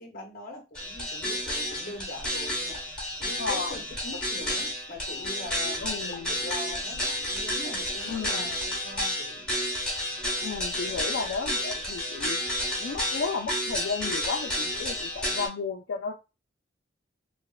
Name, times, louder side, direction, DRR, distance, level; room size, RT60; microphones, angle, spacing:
voice 1, 0.0-9.5, left 2 dB, 50° left, 0.8 m, -42 dB
sound 1, 0.7-15.5, left 1 dB, 5° left, 1.0 m, -31 dB
voice 2, 3.4-3.8 5.8-6.3 8.1-8.5 10.4-12.4 12.8-16.1, left 5 dB, 70° left, 0.4 m, -33 dB
3.2 x 2.0 x 2.3 m
head